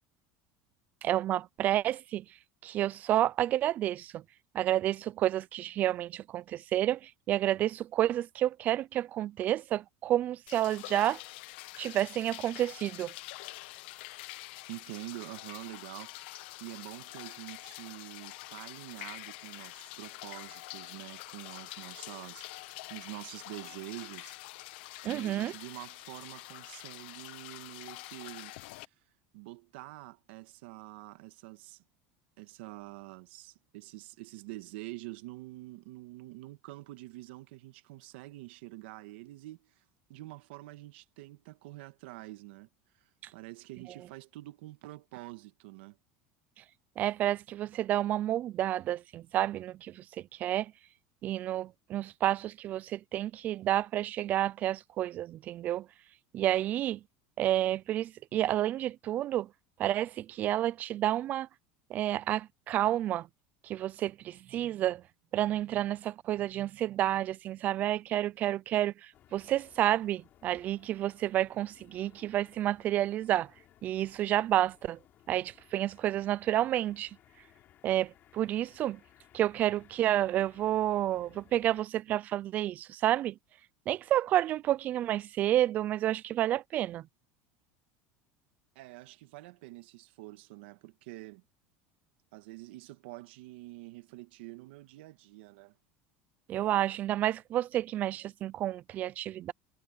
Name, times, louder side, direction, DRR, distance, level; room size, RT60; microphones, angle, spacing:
voice 1, 1.0-2.3 2.6-4.2 4.5-11.2 11.8-13.1 25.0-25.5 47.0-50.0 50.4-50.7 51.2-55.9 56.3-57.0 57.4-59.5 59.8-61.5 61.9-63.3 63.6-65.0 65.3-73.5 73.8-75.0 75.3-77.2 77.8-79.0 79.3-83.4 83.9-87.1 96.5-99.5, right 13 dB, 30° right, 0.3 m, -30 dB
sound 1, 10.5-28.8, left 20 dB, 75° left, 0.8 m, -46 dB
voice 2, 14.7-24.3 25.0-28.5 28.8-28.9 29.3-31.8 32.4-42.7 43.0-46.0 88.7-91.4 92.3-95.8, right 19 dB, 80° right, 1.5 m, -46 dB
sound 2, 69.1-81.8, left 12 dB, 35° left, 3.4 m, -62 dB
cardioid pair, 175°, 6 cm